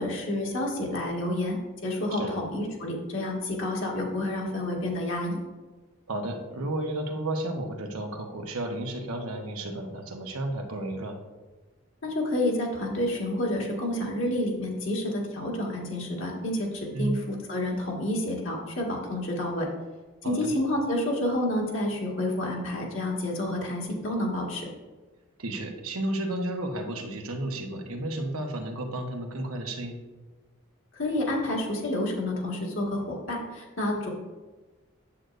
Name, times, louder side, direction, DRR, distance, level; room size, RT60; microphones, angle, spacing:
voice 1, 0.0-1.6 1.8-5.4 12.0-19.7 20.2-24.7 30.9-34.1, left 1 dB, 65° left, -2 dB, 1.7 m, -29 dB
voice 2, 6.1-11.2 16.9-17.1 20.2-20.5 25.4-30.0, right 1 dB, 85° right, 3 dB, 1.0 m, -32 dB
8.5 x 7.9 x 2.5 m, 1.3 s
head